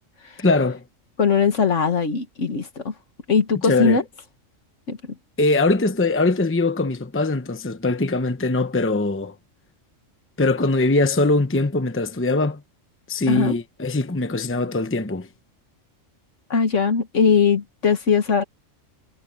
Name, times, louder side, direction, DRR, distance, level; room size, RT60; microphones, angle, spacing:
voice 1, 0.4-0.8 3.6-4.0 5.4-9.3 10.4-12.6 13.1-15.3, left 2 dB, 10° left, 0.8 m, -21 dB
voice 2, 1.2-2.9 3.3-4.0 4.9-5.0 13.3-13.6 16.5-18.4, left 5 dB, 65° left, 1.9 m, -20 dB
omnidirectional pair, 1.4 m